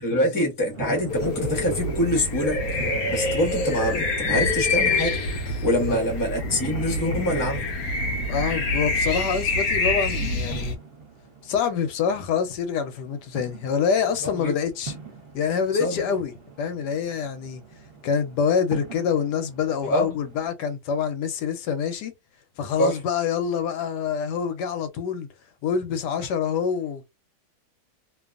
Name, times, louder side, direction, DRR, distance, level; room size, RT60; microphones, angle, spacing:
voice 1, 0.0-2.6 3.1-5.2 5.6-7.7 14.2-14.5 15.8-16.0 19.8-20.2 22.8-23.0, equal, 20° left, 0.6 m, -25 dB
sound 1, 0.7-20.5, right 4 dB, 40° right, 1.1 m, -41 dB
sound 2, 1.1-10.7, left 2 dB, 70° left, 1.0 m, -26 dB
voice 2, 8.3-10.8 11.4-14.9 15.3-16.3 16.6-17.6 18.0-22.1 22.6-25.3 25.6-27.1, left 7 dB, 90° left, 1.3 m, -26 dB
2.8 x 2.2 x 2.4 m
omnidirectional pair, 1.7 m